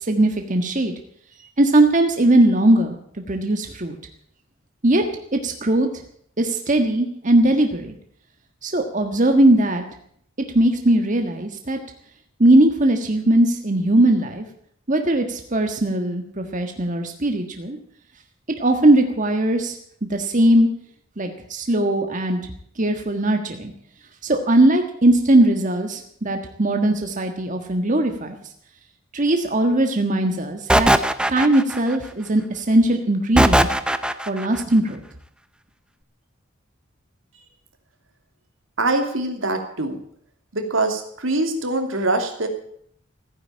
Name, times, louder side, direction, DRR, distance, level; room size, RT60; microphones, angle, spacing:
voice 1, 0.0-0.9 1.6-3.0 3.3-4.0 4.8-5.0 5.3-5.9 6.4-7.9 8.6-9.8 10.5-11.8 12.4-14.4 14.9-17.8 18.6-20.7 21.2-22.4 22.8-23.7 24.2-28.4 29.1-30.9 31.3-33.7 34.3-35.0, right 1 dB, 40° right, 4 dB, 1.5 m, -19 dB
sound 1, 30.7-31.9 33.4-34.5, right 1 dB, 5° right, 0.6 m, -18 dB
voice 2, 38.8-40.0 40.5-42.5, right 2 dB, 85° right, 5 dB, 2.8 m, -23 dB
15.5 x 9.9 x 8.7 m, 0.66 s
head